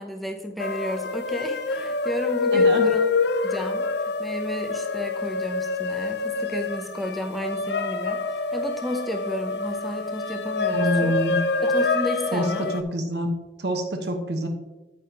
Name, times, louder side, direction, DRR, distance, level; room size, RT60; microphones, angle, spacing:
voice 1, 0.0-3.1 3.4-3.9 4.2-8.2 8.5-11.2 11.6-12.7, left 1 dB, ahead, 3 dB, 0.6 m, -32 dB
sound 1, 0.6-12.8, left 3 dB, 65° left, 0.5 m, -26 dB
voice 2, 2.5-2.9 10.7-11.4 12.3-13.3 13.6-14.5, equal, 70° right, 5 dB, 1.2 m, -26 dB
9.3 x 9.2 x 2.9 m, 1.1 s
head